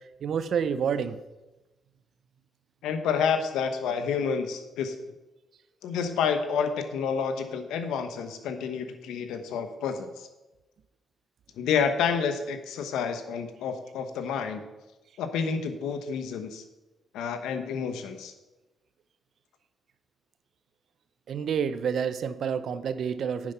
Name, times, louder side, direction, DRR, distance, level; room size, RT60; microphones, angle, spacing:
voice 1, 0.2-1.2 21.3-23.5, right 7 dB, 65° right, 13 dB, 0.7 m, -28 dB
voice 2, 2.8-4.9 5.8-10.3 11.6-14.6 15.2-16.6 17.1-18.3, left 6 dB, 85° left, 8 dB, 1.1 m, -29 dB
9.9 x 7.5 x 5.6 m, 1.1 s
supercardioid pair, 65°, 0 cm